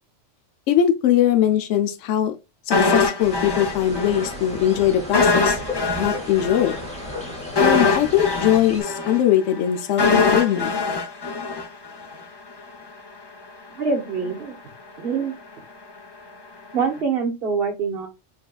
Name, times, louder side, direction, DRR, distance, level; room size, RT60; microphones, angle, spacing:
voice 1, 0.7-2.4 2.7-5.6 6.0-6.7 7.6-10.7, left 10 dB, 80° left, 0.9 m, -21 dB
sound 1, 2.7-4.3 4.6-4.7 5.1-12.2 12.5-12.6, left 4 dB, 35° left, 0.4 m, -22 dB
sound 2, 3.2-8.8, left 1 dB, 5° left, 1.7 m, -34 dB
voice 2, 13.8-14.5 15.0-15.3 16.7-18.1, right 5 dB, 55° right, 1.3 m, -24 dB
4.5 x 3.4 x 2.3 m
omnidirectional pair, 1.2 m